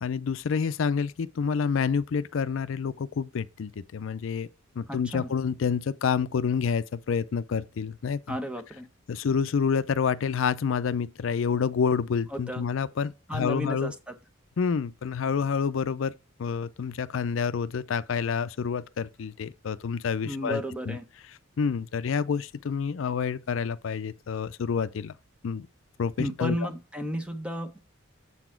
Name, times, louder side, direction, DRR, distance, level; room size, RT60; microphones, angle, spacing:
voice 1, 0.0-4.5 4.8-8.4 9.1-13.9 14.6-16.1 16.4-21.0 21.6-25.1 25.4-25.7 26.0-26.6, left 6 dB, 75° left, 0.4 m, -28 dB
voice 2, 4.9-5.3 8.3-8.9 12.3-12.7 13.3-14.2 20.2-21.0 26.2-27.8, equal, 5° right, 0.9 m, -33 dB
7.5 x 4.1 x 4.4 m
head